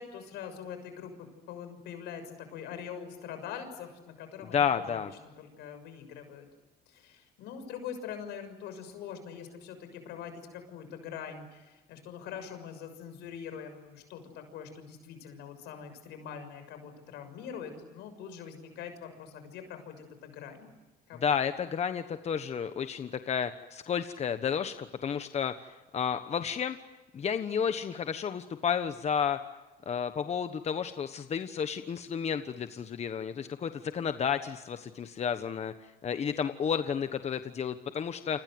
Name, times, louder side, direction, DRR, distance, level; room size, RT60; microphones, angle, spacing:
voice 1, 0.0-5.0 5.4-6.5 6.9-20.7 21.1-21.3, left 7 dB, 85° left, 8 dB, 6.7 m, -43 dB
voice 2, 4.5-5.1 21.2-26.8 27.1-29.4 29.9-35.7 36.0-38.4, left 7 dB, 40° left, 9 dB, 1.3 m, -31 dB
29.5 x 26.0 x 7.9 m, 1.1 s
cardioid pair, 110°, 17 cm